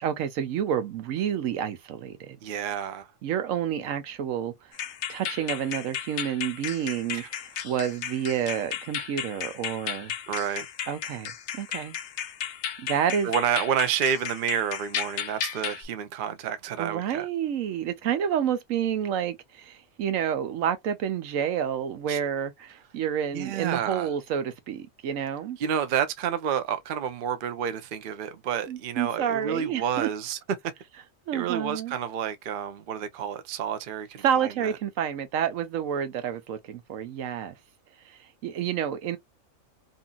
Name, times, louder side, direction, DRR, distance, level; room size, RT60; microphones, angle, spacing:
voice 1, 0.0-2.4 3.2-4.7 5.1-10.2 10.9-12.0 12.8-13.3 16.8-25.6 28.7-30.1 31.3-31.9 34.2-37.5 38.1-39.2, right 9 dB, 85° right, 1.1 m, -29 dB
voice 2, 2.4-3.1 7.1-7.3 10.3-10.7 13.2-17.3 22.1-22.2 23.3-24.1 25.6-30.4 31.3-34.7, right 8 dB, 55° right, 0.6 m, -29 dB
sound 1, 4.7-15.9, left 9 dB, 70° left, 0.8 m, -35 dB
2.8 x 2.6 x 2.2 m
omnidirectional pair, 1.3 m